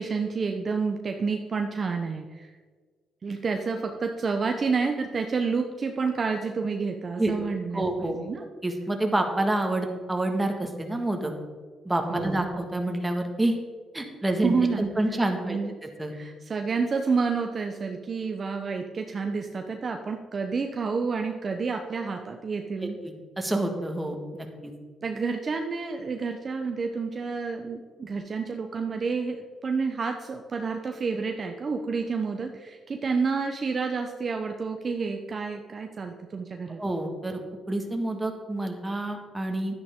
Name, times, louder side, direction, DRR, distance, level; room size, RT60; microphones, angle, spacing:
voice 1, 0.0-2.5 3.2-8.4 12.1-12.4 14.4-14.8 15.1-15.2 15.4-15.7 16.1-23.0 25.0-36.8, right 4 dB, 40° right, 4 dB, 0.8 m, -29 dB
voice 2, 7.7-8.2 8.6-11.3 11.8-13.6 13.9-16.1 22.8-24.7 36.8-37.4 37.7-39.7, right 1 dB, 15° right, 3 dB, 1.7 m, -28 dB
11.0 x 9.7 x 3.7 m, 1.5 s
cardioid pair, 90°, 0 cm